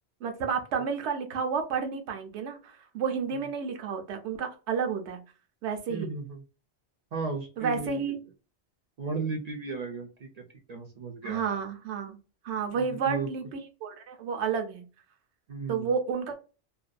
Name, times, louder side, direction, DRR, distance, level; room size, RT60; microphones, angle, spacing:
voice 1, 0.2-5.2 5.6-6.1 7.6-8.2 11.2-12.2 12.4-14.8 15.7-16.3, right 6 dB, 80° right, 5 dB, 0.9 m, -31 dB
voice 2, 5.9-6.4 7.1-8.2 9.0-11.6 12.8-13.3 15.5-15.9, right 4 dB, 55° right, 2 dB, 0.4 m, -35 dB
2.6 x 2.2 x 2.4 m, 0.34 s
omnidirectional pair, 1.2 m